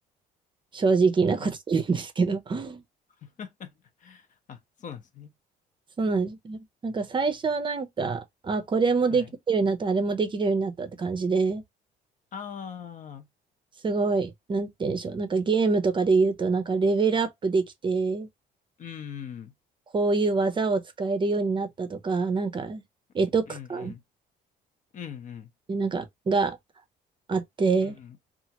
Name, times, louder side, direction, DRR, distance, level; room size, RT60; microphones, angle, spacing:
voice 1, 0.7-2.8 6.0-11.6 13.8-18.3 19.9-22.8 23.1-23.9 25.7-26.6 27.3-28.0, right 4 dB, 30° right, 0.6 m, -25 dB
voice 2, 3.2-3.7 4.0-5.3 9.1-9.3 12.3-13.3 18.8-19.5 23.5-24.0 24.9-25.5 27.8-28.2, left 8 dB, 50° left, 0.7 m, -41 dB
2.8 x 2.4 x 2.8 m
cardioid pair, 110°, 17 cm